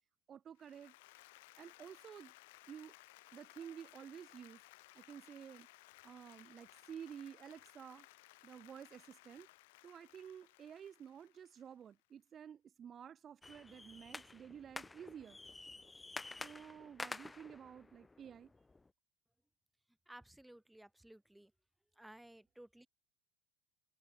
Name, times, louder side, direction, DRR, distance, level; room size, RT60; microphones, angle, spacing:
voice 1, 0.3-0.9 1.6-2.3 2.7-2.9 3.3-4.6 4.9-5.7 6.0-8.1 8.4-9.5 9.8-15.4 16.4-18.5, right 8 dB, 35° right, 0.6 m, -52 dB
Applause, 0.6-11.9, left 22 dB, 70° left, 2.3 m, -61 dB
sound 1, 13.4-18.9, left 3 dB, 15° left, 2.0 m, -50 dB
voice 2, 20.1-21.5 22.0-22.9, right 1 dB, 5° right, 3.6 m, -57 dB
hypercardioid pair, 90°, 0 cm